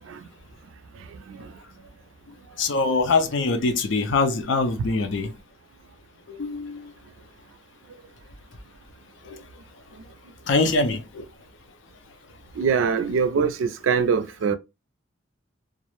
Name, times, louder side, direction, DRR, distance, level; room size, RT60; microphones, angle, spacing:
voice 1, 2.6-5.3 6.3-6.9 9.3-9.4 10.5-11.2, left 3 dB, 70° left, 0.5 m, -23 dB
voice 2, 12.6-14.6, right 6 dB, 80° right, 0.3 m, -23 dB
2.4 x 2.0 x 2.9 m
head